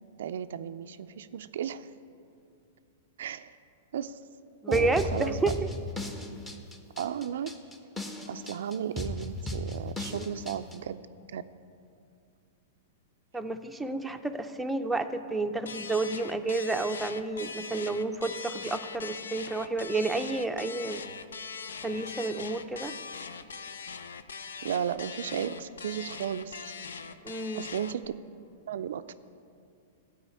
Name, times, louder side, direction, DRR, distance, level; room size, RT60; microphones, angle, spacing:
voice 1, 0.2-1.9 3.2-3.5 3.9-4.2 4.7-5.5 7.0-7.5 8.3-11.0 11.3-11.4 24.6-26.7 27.5-28.0 28.7-29.1, right 9 dB, 75° right, 11 dB, 0.3 m, -34 dB
voice 2, 4.6-5.6 10.1-10.2 13.3-21.0 21.8-23.0 27.2-27.7, right 3 dB, 5° right, 5 dB, 0.5 m, -30 dB
sound 1, 4.7-10.8, left 2 dB, 15° left, 0.9 m, -36 dB
sound 2, 15.7-28.1, left 5 dB, 85° left, 0.5 m, -41 dB
13.0 x 4.9 x 8.4 m, 2.5 s
hypercardioid pair, 120°, 0 cm